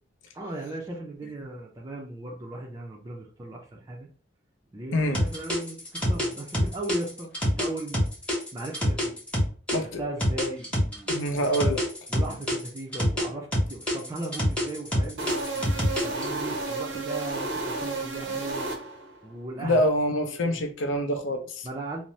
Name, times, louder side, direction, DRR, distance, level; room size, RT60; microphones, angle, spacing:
voice 1, 0.3-4.1 4.7-8.1 8.5-9.1 9.8-11.6 12.1-18.8 19.2-19.8 20.2-20.6 21.6-22.0, right 2 dB, 20° right, 0.4 m, -37 dB
sound 1, 5.1-9.8 10.2-13.3 13.5-16.2, equal, 5° left, 0.8 m, -25 dB
voice 2, 11.1-11.9 19.6-21.7, equal, 85° left, 0.5 m, -26 dB
sound 2, 15.2-19.2, right 3 dB, 75° right, 0.6 m, -32 dB
2.6 x 2.0 x 3.0 m
head